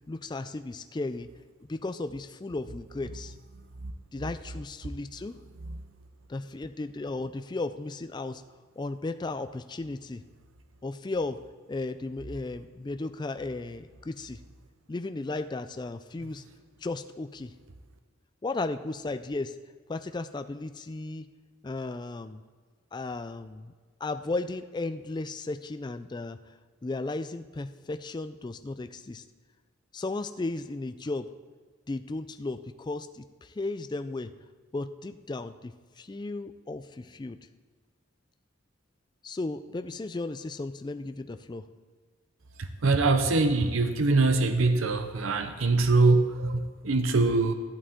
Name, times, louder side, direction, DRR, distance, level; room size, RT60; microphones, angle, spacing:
voice 1, 0.1-1.4 1.7-3.3 4.1-5.4 6.3-8.4 8.8-10.2 10.8-11.4 11.7-14.4 14.9-16.4 16.8-17.5 18.4-19.6 19.9-21.3 21.6-22.4 22.9-23.7 24.0-26.4 26.8-29.2 29.9-31.3 31.9-34.3 34.7-37.5 39.2-41.7, left 2 dB, 20° left, 10 dB, 0.3 m, -35 dB
voice 2, 42.6-47.5, right 3 dB, 75° right, 8 dB, 0.7 m, -23 dB
13.5 x 11.5 x 3.7 m, 1.5 s
head